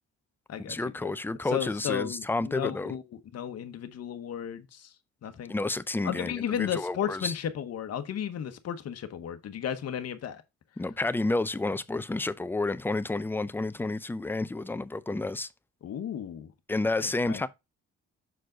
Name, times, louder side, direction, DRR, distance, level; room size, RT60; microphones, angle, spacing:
voice 1, 0.7-2.9 5.5-7.3 10.8-15.5 16.7-17.5, left 2 dB, 5° left, 0.4 m, -30 dB
voice 2, 1.5-3.0 3.3-4.9 5.2-5.5 6.0-10.4 15.8-16.5 17.0-17.5, left 9 dB, 55° left, 0.9 m, -34 dB
6.5 x 4.5 x 3.7 m
cardioid pair, 90°, 30 cm